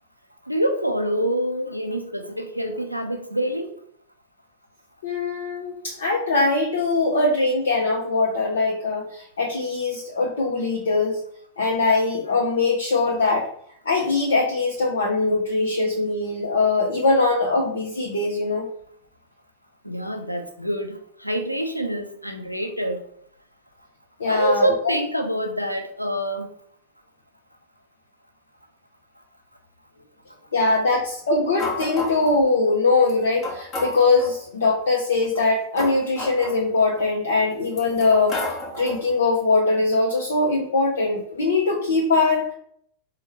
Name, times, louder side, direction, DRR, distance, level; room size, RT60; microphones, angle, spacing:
voice 1, 0.5-3.7 19.8-23.0 24.3-26.5, right 1 dB, 90° right, 4 dB, 0.4 m, -26 dB
voice 2, 5.0-11.2 11.6-13.5 13.9-18.7 24.2-24.7 30.5-38.4 38.8-42.5, left 3 dB, 65° left, -1 dB, 0.5 m, -22 dB
Metal impact, 31.6-32.4 33.1-33.2 33.4-34.4 35.2-37.1 37.6-39.1, left 2 dB, 30° left, 0.9 m, -32 dB
4.4 x 2.1 x 3.0 m, 0.65 s
figure-of-eight pair, 90°, 0 cm